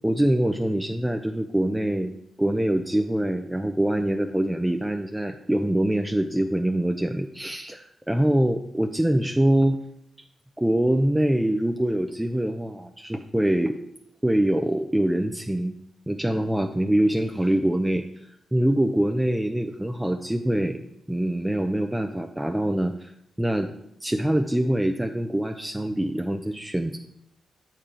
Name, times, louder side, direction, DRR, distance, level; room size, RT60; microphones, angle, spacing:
voice 1, 0.0-9.8 10.6-13.8 14.2-15.7 16.1-23.1 23.4-23.7 24.0-27.0, right 1 dB, 10° right, 5 dB, 0.5 m, -24 dB
7.2 x 4.6 x 5.0 m, 0.76 s
supercardioid pair, 50°, 0 cm